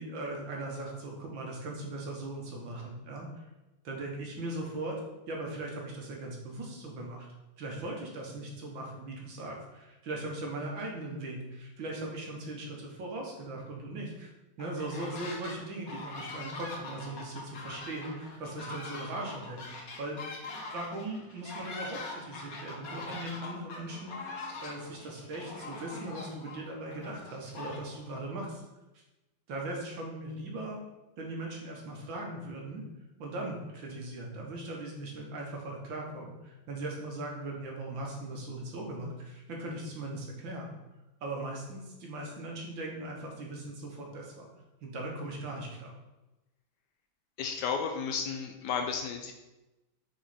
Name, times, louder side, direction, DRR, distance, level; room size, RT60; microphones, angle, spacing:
voice 1, 0.0-3.3 3.8-5.0 5.3-7.3 7.6-14.3 14.6-20.2 20.7-28.6 29.5-30.8 31.2-32.8 33.2-40.7 41.2-44.5 44.8-45.9, right 2 dB, 80° right, -1 dB, 2.0 m, -39 dB
Geese Honking, 14.6-15.6 15.9-28.2, left 3 dB, 55° left, 1.3 m, -43 dB
voice 2, 47.4-49.3, left 6 dB, 75° left, 5 dB, 1.0 m, -33 dB
5.1 x 4.7 x 4.2 m, 1.0 s
omnidirectional pair, 2.1 m